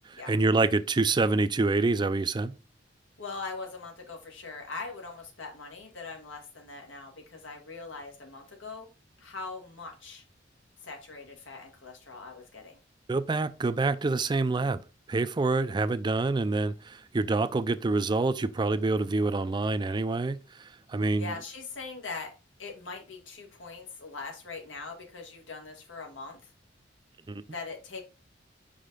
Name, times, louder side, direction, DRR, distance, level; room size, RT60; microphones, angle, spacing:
voice 1, 0.1-2.5 13.1-14.8 15.1-21.3 27.3-27.4, right 3 dB, 25° right, 0.4 m, -27 dB
voice 2, 3.2-8.9 9.2-10.2 10.8-12.8 21.2-22.3 22.6-26.4 27.5-28.0, left 4 dB, 85° left, 1.5 m, -41 dB
5.3 x 5.0 x 3.8 m
head